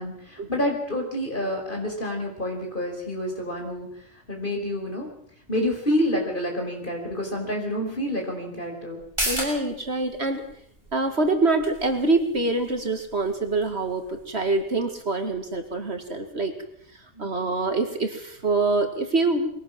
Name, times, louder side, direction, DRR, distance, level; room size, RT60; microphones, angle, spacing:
voice 1, 0.0-5.1 5.5-9.0 17.1-17.3, left 1 dB, 40° left, 2 dB, 5.5 m, -28 dB
sound 1, 9.0-16.1 16.5-16.6, equal, 20° right, 6.5 m, -37 dB
voice 2, 9.2-10.4 10.9-16.5 17.2-19.5, right 3 dB, 55° right, 6 dB, 2.4 m, -25 dB
22.0 x 17.5 x 7.6 m, 0.66 s
omnidirectional pair, 1.3 m